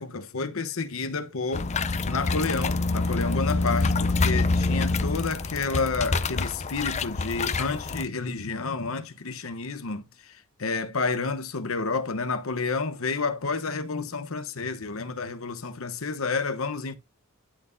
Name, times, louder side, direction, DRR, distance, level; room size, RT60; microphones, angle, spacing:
voice 1, 0.0-1.7 2.0-17.0, left 4 dB, 70° left, 1.0 m, -30 dB
sound 1, 1.5-8.0, left 3 dB, 30° left, 0.5 m, -26 dB
11.5 x 4.4 x 2.6 m
head